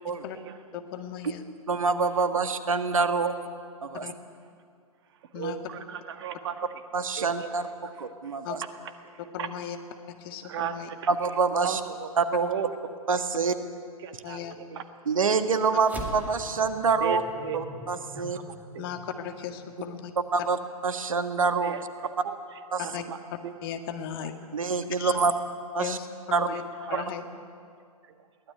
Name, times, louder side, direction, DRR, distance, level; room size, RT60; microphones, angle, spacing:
voice 1, 0.7-1.4 4.0-4.1 5.3-5.6 8.4-8.6 9.3-9.8 10.1-10.9 14.2-14.6 18.8-20.1 22.8-23.0 23.3-24.3 25.0-25.2 25.8-26.6 26.9-27.2, left 9 dB, 40° left, 7 dB, 1.9 m, -36 dB
voice 2, 1.7-3.3 3.8-4.1 6.9-7.7 8.0-8.6 11.1-11.8 12.2-12.5 13.1-13.5 15.1-17.2 17.5-18.4 20.3-20.6 20.8-21.7 22.7-22.8 24.5-25.3 25.7-26.0 26.3-26.5, right 4 dB, 65° right, 10 dB, 1.6 m, -26 dB
voice 3, 5.3-6.5 7.2-7.5 8.3-8.4 9.0-9.1 9.4-9.5 10.4-11.1 11.6-12.1 12.5-12.7 14.0-14.8 17.0-17.7 18.2-18.8 21.6-21.8 22.2-22.3 23.1-23.2 23.4-23.5 26.5-26.6 26.9-27.0, right 8 dB, 45° right, 8 dB, 1.8 m, -35 dB
sound 1, 15.8-20.5, right 1 dB, 10° right, 2.2 m, -43 dB
22.0 x 17.5 x 9.7 m, 2.3 s
figure-of-eight pair, 115°, 19 cm